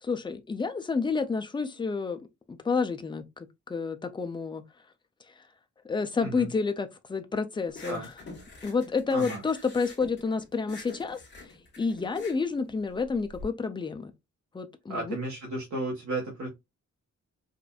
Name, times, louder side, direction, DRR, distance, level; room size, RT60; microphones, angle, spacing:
voice 1, 0.0-2.2 2.5-4.6 5.3-5.4 5.8-8.1 8.6-11.2 11.8-14.1 14.5-15.2, left 4 dB, 15° left, 0.4 m, -30 dB
voice 2, 6.2-6.5 7.8-8.1 9.1-9.4 14.9-16.5, right 2 dB, 70° right, 1.3 m, -33 dB
sound 1, 7.7-13.4, left 3 dB, 35° left, 1.4 m, -46 dB
5.0 x 2.5 x 2.3 m
wide cardioid pair, 180°, 30 cm